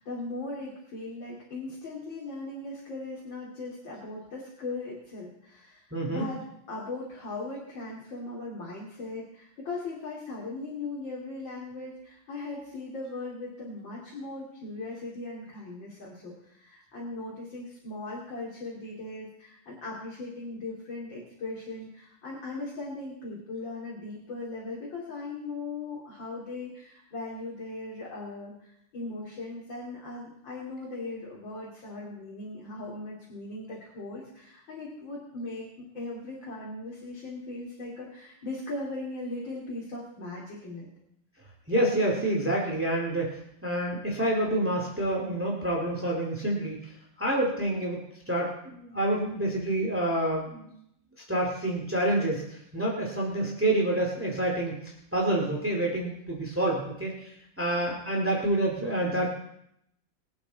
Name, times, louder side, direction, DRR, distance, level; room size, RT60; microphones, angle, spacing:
voice 1, 0.0-6.4 6.7-40.9, left 2 dB, 85° left, -5 dB, 3.6 m, -39 dB
voice 2, 5.9-6.3 41.7-48.0 48.3-50.8 51.3-59.3, right 1 dB, 5° right, -1 dB, 2.4 m, -28 dB
22.5 x 8.5 x 4.1 m, 0.75 s
omnidirectional pair, 2.0 m